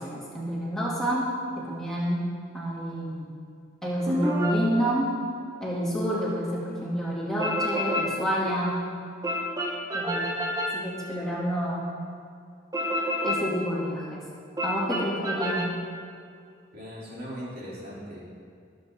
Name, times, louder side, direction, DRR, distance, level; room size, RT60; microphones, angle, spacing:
voice 1, 0.0-2.3 2.5-3.2 3.8-5.1 5.6-8.8 9.9-10.2 10.7-11.9 13.2-14.2 14.6-15.7, equal, ahead, -7 dB, 3.0 m, -29 dB
sound 1, 4.1-4.7 7.4-8.2 9.2-10.9 12.7-13.6 14.6-15.7, equal, 20° right, 1.2 m, -28 dB
voice 2, 16.7-18.2, equal, 50° right, -7 dB, 3.6 m, -39 dB
22.0 x 8.2 x 3.9 m, 2.3 s
head